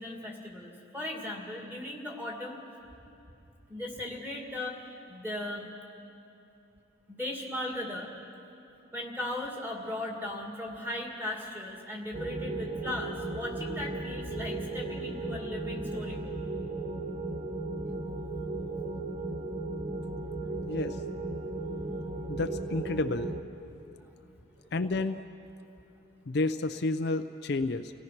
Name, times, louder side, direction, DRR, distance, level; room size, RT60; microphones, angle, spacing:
voice 1, 0.0-2.6 3.7-4.8 5.1-5.7 7.1-8.1 8.9-16.3 17.9-18.0 24.6-24.7, left 1 dB, 10° right, 0 dB, 2.3 m, -37 dB
sound 1, 12.1-23.4, right 2 dB, 30° right, 1.1 m, -36 dB
voice 2, 20.7-21.0 22.3-23.3 24.7-25.2 26.3-27.9, left 2 dB, 55° left, 8 dB, 0.5 m, -30 dB
28.5 x 17.0 x 6.0 m, 2.7 s
head